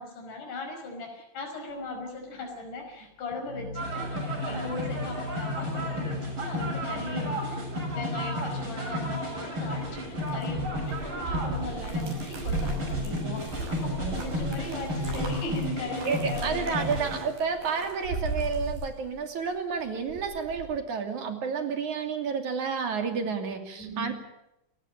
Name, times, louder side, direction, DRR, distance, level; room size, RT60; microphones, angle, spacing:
voice 1, 0.0-17.1 23.8-24.1, left 3 dB, 65° left, 2 dB, 6.9 m, -38 dB
Organ, 1.7-12.2, equal, 30° left, 7.6 m, -40 dB
sound 1, 3.7-17.2, equal, 35° right, 8.3 m, -33 dB
sound 2, 9.6-19.5 19.8-20.7, right 3 dB, 85° right, 7.4 m, -36 dB
voice 2, 16.0-24.1, right 5 dB, 60° right, 5 dB, 4.0 m, -30 dB
29.5 x 15.5 x 8.9 m, 0.86 s
omnidirectional pair, 4.0 m